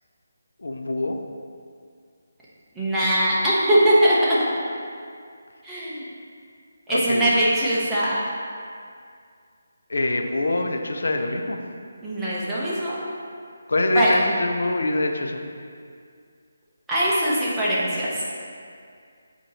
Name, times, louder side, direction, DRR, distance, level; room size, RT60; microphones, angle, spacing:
voice 1, 0.6-1.2 6.9-7.4 9.9-11.6 13.7-15.4, left 2 dB, 75° left, 3 dB, 0.6 m, -24 dB
voice 2, 2.8-4.4 5.6-6.0 6.9-8.2 12.0-13.0 13.9-14.2 16.9-18.2, right 1 dB, 5° right, -10 dB, 1.1 m, -21 dB
7.9 x 3.0 x 4.2 m, 2.2 s
figure-of-eight pair, 160°, 0 cm